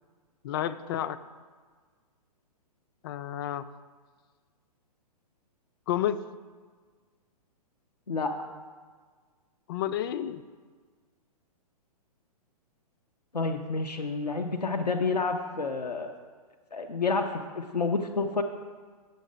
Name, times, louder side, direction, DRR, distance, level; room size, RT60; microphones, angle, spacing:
voice 1, 0.4-1.2 3.0-3.6 5.9-6.2 9.7-10.4, left 11 dB, 35° left, 13 dB, 0.4 m, -30 dB
voice 2, 13.3-16.1 16.7-18.4, left 4 dB, 90° left, 4 dB, 0.7 m, -29 dB
8.1 x 6.5 x 5.0 m, 1.5 s
figure-of-eight pair, 120°, 20 cm